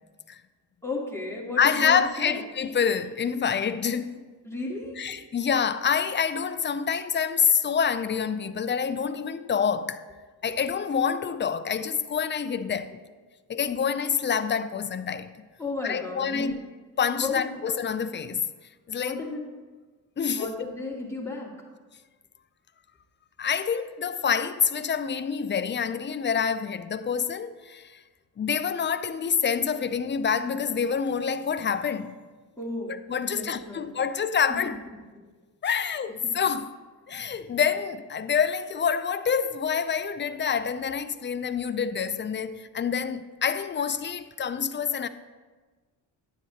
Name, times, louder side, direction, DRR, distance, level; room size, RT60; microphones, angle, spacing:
voice 1, 0.8-2.4 4.4-4.9 15.6-16.6 17.2-17.5 19.0-19.4 20.3-21.5 32.6-32.9 33.2-33.9 35.1-35.2 36.2-36.3, left 3 dB, 5° left, 2.4 m, -34 dB
voice 2, 1.6-4.2 5.0-10.0 10.4-13.0 13.5-15.3 15.8-16.5 17.0-18.5 18.9-19.2 20.2-20.6 23.4-27.8 28.4-32.2 33.1-34.8 35.6-36.7 37.1-45.1, left 7 dB, 25° left, 0.4 m, -27 dB
9.7 x 7.8 x 2.9 m
supercardioid pair, 45°, 47 cm